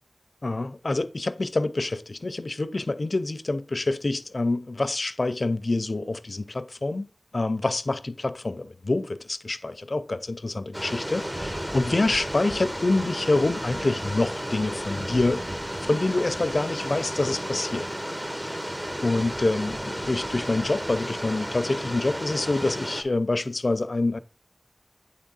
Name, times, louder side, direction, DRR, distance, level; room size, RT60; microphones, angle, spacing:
voice 1, 0.4-15.4 15.8-17.9 18.2-18.5 19.0-24.2, left 2 dB, 80° left, 0.4 m, -26 dB
sound 1, 10.7-23.0, equal, 25° right, 1.1 m, -33 dB
8.5 x 3.6 x 3.9 m
wide cardioid pair, 45°, 0 cm